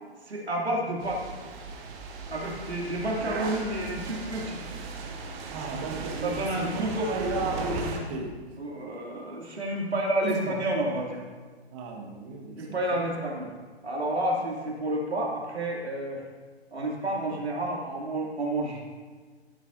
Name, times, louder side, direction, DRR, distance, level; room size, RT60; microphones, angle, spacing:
voice 1, 0.2-1.2 2.3-4.6 6.2-7.5 8.6-11.2 12.6-13.5 13.8-16.2 16.7-18.9, right 1 dB, 75° right, -2 dB, 2.6 m, -30 dB
sound 1, 1.0-8.0, right 4 dB, 10° right, 0.4 m, -37 dB
voice 2, 2.4-2.8 5.5-8.3 10.2-10.6 11.7-13.0, right 3 dB, 30° right, 1 dB, 1.4 m, -34 dB
14.5 x 8.3 x 2.6 m, 1.5 s
figure-of-eight pair, 125°, 32 cm